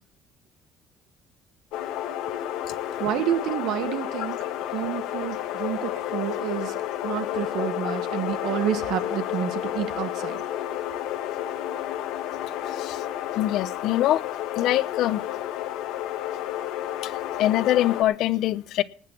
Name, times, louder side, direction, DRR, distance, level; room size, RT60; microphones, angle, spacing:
sound 1, 1.7-18.0, left 12 dB, 90° left, 1.5 m, -31 dB
voice 1, 3.0-4.4 4.7-6.8 7.0-10.4, right 11 dB, 70° right, 11 dB, 1.5 m, -29 dB
voice 2, 12.7-13.0 13.3-14.2 14.6-15.2 17.0-18.8, left 14 dB, 65° left, 16 dB, 0.8 m, -24 dB
19.0 x 6.6 x 7.5 m, 0.43 s
cardioid pair, 145°, 0 cm